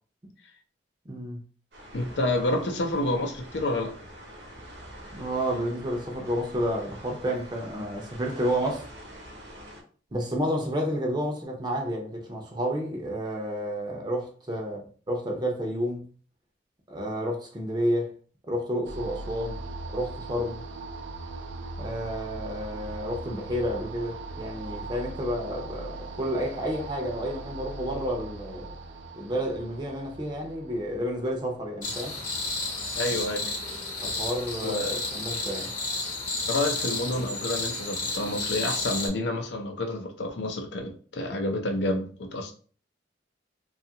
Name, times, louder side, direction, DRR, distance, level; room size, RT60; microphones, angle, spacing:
voice 1, 1.1-1.4 5.1-8.9 10.1-14.8 15.1-16.1 16.9-18.1 18.5-19.6 19.9-20.6 21.8-28.7 29.2-32.1 34.0-35.7, equal, 25° right, 0.5 m, -30 dB
sound 1, 1.7-9.8, right 1 dB, 60° right, 0.8 m, -45 dB
voice 2, 1.9-3.9 32.9-33.5 34.6-35.0 36.5-42.5, left 2 dB, 70° left, 0.5 m, -29 dB
sound 2, 18.8-33.0, right 2 dB, 90° right, 0.4 m, -40 dB
sound 3, 31.8-39.1, left 3 dB, 45° left, 1.0 m, -31 dB
2.7 x 2.3 x 2.8 m
head